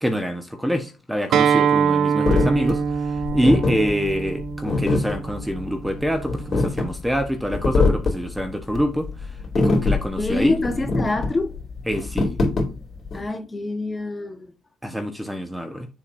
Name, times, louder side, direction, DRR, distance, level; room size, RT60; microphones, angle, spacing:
voice 1, 0.0-2.8 3.3-9.1 9.5-10.6 11.9-12.3 14.8-15.9, equal, 5° right, 1.1 m, -25 dB
Acoustic guitar, 1.3-6.5, right 7 dB, 70° right, 0.5 m, -24 dB
sound 1, 2.3-13.2, left 3 dB, 45° left, 3.1 m, -23 dB
voice 2, 10.2-11.6 13.1-14.5, left 2 dB, 20° left, 1.3 m, -25 dB
7.3 x 6.3 x 2.7 m
cardioid pair, 90°, 0 cm